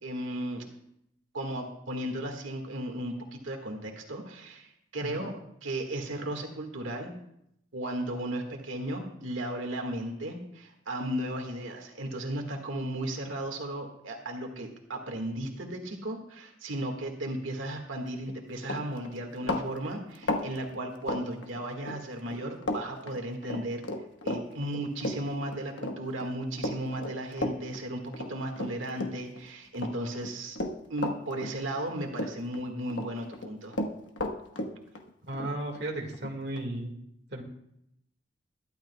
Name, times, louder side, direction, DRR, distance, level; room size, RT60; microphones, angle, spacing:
voice 1, 0.0-0.6 1.3-4.7 4.9-5.3 5.6-7.1 7.7-23.8 24.2-30.6 30.9-33.8, right 1 dB, 90° right, 2 dB, 1.8 m, -35 dB
Run, 18.2-18.3 18.6-22.0 22.3-22.8 23.1-29.4 29.7-31.9 32.1-33.1 33.3-36.7, left 1 dB, 75° left, 1.3 m, -34 dB
voice 2, 35.3-36.9 37.3-37.4, right 1 dB, 55° right, 1 dB, 1.9 m, -35 dB
22.0 x 12.0 x 2.3 m, 0.76 s
head